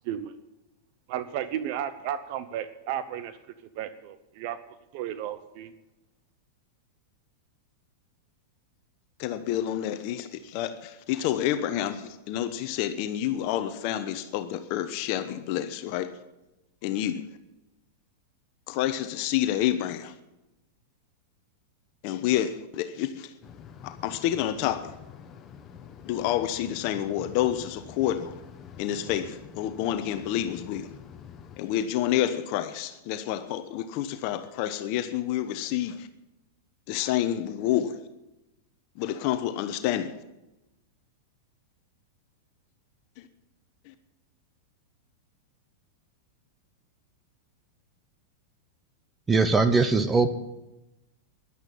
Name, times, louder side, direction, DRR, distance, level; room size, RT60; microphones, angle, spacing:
voice 1, 1.1-3.4 3.7-4.6 4.9-5.7, right 10 dB, 55° right, 0.9 m, -33 dB
voice 2, 9.2-16.2 16.8-17.2 18.7-20.2 22.0-23.3 23.8-25.0 26.0-28.4 28.8-30.9 31.6-36.1 36.9-38.0 39.0-40.2 43.2-43.3 43.8-43.9, left 11 dB, 50° left, 1.0 m, -29 dB
sound 1, 23.4-31.6, left 8 dB, 30° left, 1.3 m, -47 dB
voice 3, 49.3-50.3, right 4 dB, 15° right, 0.9 m, -21 dB
11.0 x 10.5 x 8.4 m
hypercardioid pair, 130°, 0 cm